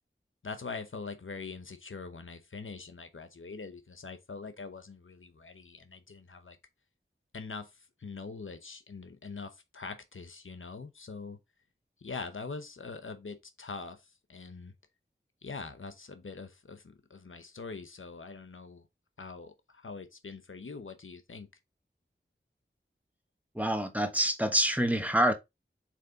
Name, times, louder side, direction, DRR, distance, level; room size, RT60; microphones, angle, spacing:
voice 1, 0.4-6.6 7.3-11.4 12.0-14.7 15.4-18.8 19.2-21.5, left 4 dB, 85° left, 0.9 m, -43 dB
voice 2, 23.5-25.3, equal, 5° right, 1.2 m, -26 dB
7.4 x 3.2 x 3.9 m
wide cardioid pair, 45°, 20 cm